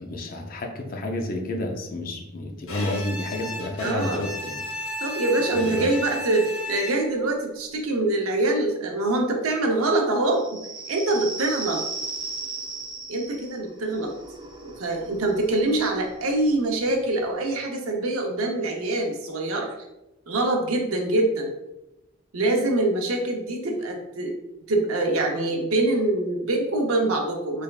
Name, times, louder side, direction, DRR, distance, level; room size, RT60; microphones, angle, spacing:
voice 1, 0.0-4.7 5.5-5.9, left 1 dB, 40° left, 3 dB, 0.5 m, -30 dB
Bowed string instrument, 2.7-7.3, left 1 dB, 75° left, 0.8 m, -34 dB
voice 2, 3.8-4.2 5.0-10.6 10.9-11.8 13.1-14.1 14.6-19.7 20.3-21.5 22.3-24.4 24.7-27.6, right 2 dB, 90° right, 1 dB, 0.7 m, -24 dB
sound 1, 10.3-17.6, right 3 dB, 20° right, 0.4 m, -37 dB
3.4 x 3.3 x 2.3 m, 0.94 s
head